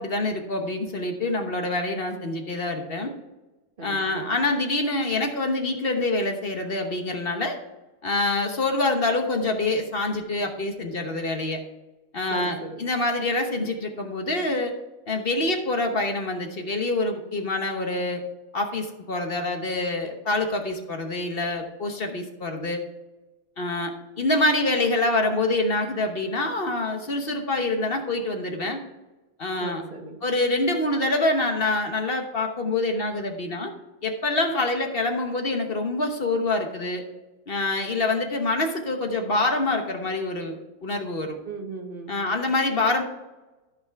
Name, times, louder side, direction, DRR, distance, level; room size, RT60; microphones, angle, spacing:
voice 1, 0.0-3.1 3.8-7.6 8.0-11.6 12.1-14.7 15.1-18.2 18.5-22.8 23.6-28.8 29.4-29.8 30.2-33.7 34.0-37.0 37.5-41.4 42.1-43.0, left 2 dB, 40° left, 4 dB, 1.0 m, -26 dB
voice 2, 3.8-4.3 12.3-12.8 29.6-30.2 41.4-42.3, right 3 dB, 35° right, 3 dB, 1.2 m, -37 dB
13.5 x 5.3 x 4.6 m, 1.1 s
omnidirectional pair, 2.0 m